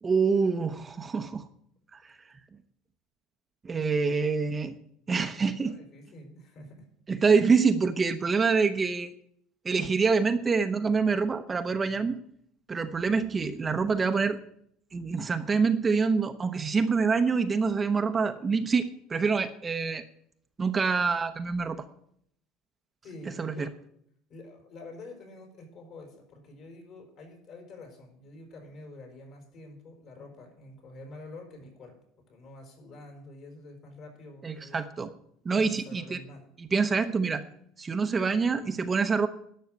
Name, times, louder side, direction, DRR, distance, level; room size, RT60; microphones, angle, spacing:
voice 1, 0.0-1.4 1.9-2.1 3.6-4.8 5.1-5.8 7.1-9.1 9.6-12.2 12.7-14.4 14.9-20.0 20.6-21.8 23.4-23.7 34.4-35.1 35.4-36.2 36.6-37.4 37.8-39.3, right 5 dB, 25° right, 8 dB, 0.8 m, -26 dB
voice 2, 5.5-6.9 23.0-23.7 24.3-32.0 32.3-34.9 35.5-36.4, left 2 dB, 50° left, 3 dB, 5.1 m, -47 dB
12.0 x 6.5 x 9.5 m, 0.70 s
supercardioid pair, 110°, 0 cm